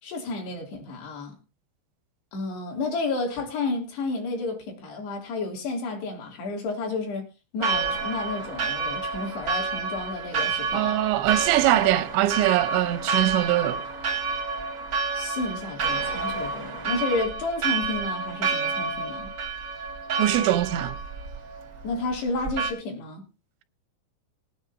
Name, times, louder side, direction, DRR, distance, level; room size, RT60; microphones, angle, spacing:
voice 1, 0.0-1.3 2.3-7.3 7.5-11.0 15.1-19.3 21.8-23.2, left 3 dB, 65° left, 5.0 m, -31 dB
Church bell, 7.6-22.7, right 4 dB, 65° right, 1.0 m, -29 dB
voice 2, 10.7-13.8 20.2-21.0, right 15 dB, 90° right, 3.1 m, -22 dB
20.5 x 9.5 x 2.8 m
omnidirectional pair, 5.1 m